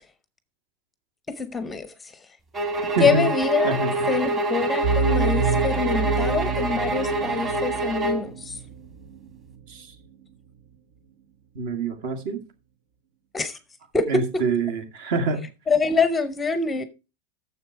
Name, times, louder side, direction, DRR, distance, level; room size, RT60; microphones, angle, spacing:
voice 1, 1.3-2.2 3.0-3.8 4.1-8.6 13.3-13.6 13.9-14.1 15.7-16.8, left 5 dB, 10° left, 0.7 m, -25 dB
sound 1, 2.5-8.3, right 2 dB, 20° right, 1.9 m, -26 dB
voice 2, 3.0-3.3 3.6-4.2 9.7-10.0 11.5-12.4 14.1-15.5, right 3 dB, 55° right, 2.0 m, -26 dB
sound 2, 4.8-9.6, right 5 dB, 75° right, 1.2 m, -28 dB
9.7 x 7.1 x 4.6 m
supercardioid pair, 160°, 0 cm